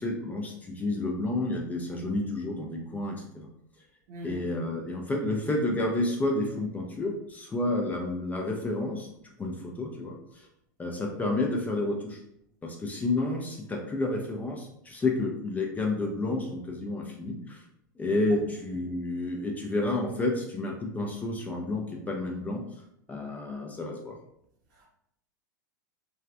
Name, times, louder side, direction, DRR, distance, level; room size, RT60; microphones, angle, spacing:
voice 1, 0.0-3.5 4.2-9.1 9.4-10.5 10.8-12.2 12.6-17.6 18.0-22.6 23.1-24.2, left 2 dB, 15° left, 1 dB, 0.4 m, -30 dB
voice 2, 4.1-4.5 18.3-18.5 24.7-24.9, right 2 dB, 60° right, -3 dB, 0.7 m, -42 dB
3.1 x 2.2 x 2.5 m, 0.76 s
hypercardioid pair, 95°, 11 cm